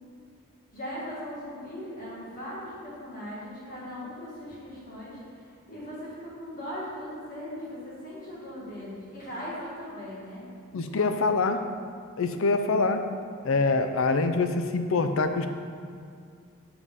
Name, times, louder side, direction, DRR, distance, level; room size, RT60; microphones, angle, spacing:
voice 1, 0.7-10.4 10.9-11.1, equal, 40° left, -7 dB, 2.0 m, -39 dB
voice 2, 10.7-11.6 12.2-13.0 13.4-15.5, left 3 dB, 75° left, 8 dB, 0.5 m, -25 dB
7.2 x 5.0 x 5.5 m, 2.3 s
head